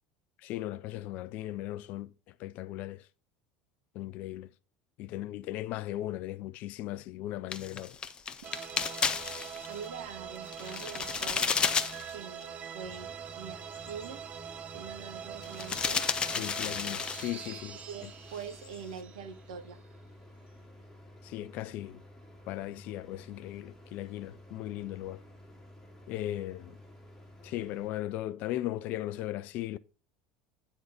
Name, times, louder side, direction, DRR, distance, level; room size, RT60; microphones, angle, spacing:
voice 1, 0.4-2.1 2.4-3.1 3.9-4.5 5.0-8.0 16.3-18.1 21.2-22.0 22.4-25.2 26.1-26.8 27.4-29.8, left 14 dB, 50° left, 0.5 m, -37 dB
sound 1, 7.5-9.9 10.3-12.1 12.4-12.5 12.9-13.0 13.7-14.1 15.4-17.5 17.8-18.1 18.3-18.8, left 6 dB, 30° left, 0.8 m, -33 dB
sound 2, 8.4-19.9, right 8 dB, 40° right, 0.6 m, -44 dB
voice 2, 9.7-11.5 12.1-14.2 14.7-16.0 17.9-19.8, right 7 dB, 70° right, 0.9 m, -44 dB
sound 3, 12.8-27.9, left 1 dB, 10° left, 3.0 m, -53 dB
9.2 x 4.3 x 4.9 m
figure-of-eight pair, 70°, 3 cm